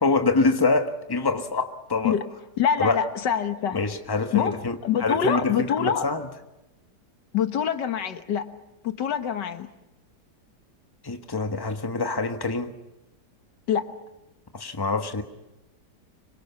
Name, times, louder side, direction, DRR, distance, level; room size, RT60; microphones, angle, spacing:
voice 1, 0.0-2.2 2.8-3.0 3.7-6.3 11.0-12.7 14.5-15.2, left 3 dB, 15° left, 6 dB, 1.3 m, -25 dB
voice 2, 2.6-3.8 4.3-4.5 4.8-6.1 7.3-8.5 8.8-9.7 13.7-13.9, left 8 dB, 90° left, 9 dB, 1.9 m, -25 dB
25.5 x 23.5 x 7.1 m, 0.96 s
omnidirectional pair, 1.8 m